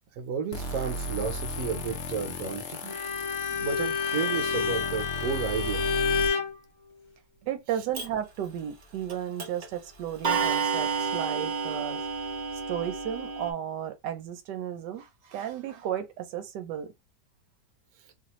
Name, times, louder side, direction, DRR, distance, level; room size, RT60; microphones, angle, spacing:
voice 1, 0.1-3.0 3.5-6.0, right 6 dB, 65° right, 1.2 m, -32 dB
sound 1, 0.5-6.3, left 1 dB, 85° left, 0.6 m, -35 dB
Bowed string instrument, 2.9-6.6, left 6 dB, 65° left, 1.1 m, -29 dB
voice 2, 7.5-12.0 12.5-16.9, right 10 dB, 90° right, 1.2 m, -34 dB
Clock, 7.9-8.1 9.1-9.2 9.4-9.7 10.2-13.5, right 5 dB, 50° right, 0.6 m, -30 dB
2.9 x 2.5 x 3.0 m
omnidirectional pair, 1.8 m